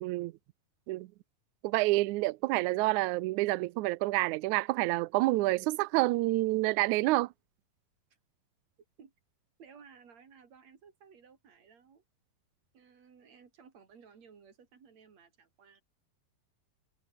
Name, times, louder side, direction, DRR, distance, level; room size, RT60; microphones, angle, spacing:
voice 1, 0.0-0.3 0.9-1.1 1.6-7.3, right 20 dB, 90° right, 1.7 m, -28 dB
voice 2, 9.6-12.0 12.7-15.8, right 6 dB, 50° right, 4.4 m, -57 dB
omnidirectional pair, 4.1 m